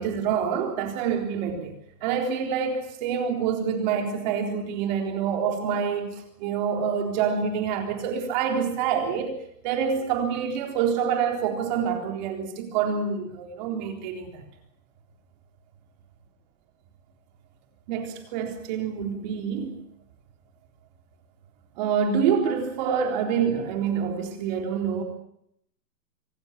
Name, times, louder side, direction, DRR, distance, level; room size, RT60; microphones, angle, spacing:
voice 1, 0.0-9.4 9.6-14.4 17.9-19.8 21.8-25.0, right 7 dB, 25° right, 3.9 m, -27 dB
25.5 x 17.0 x 8.3 m
hypercardioid pair, 165°, 50 cm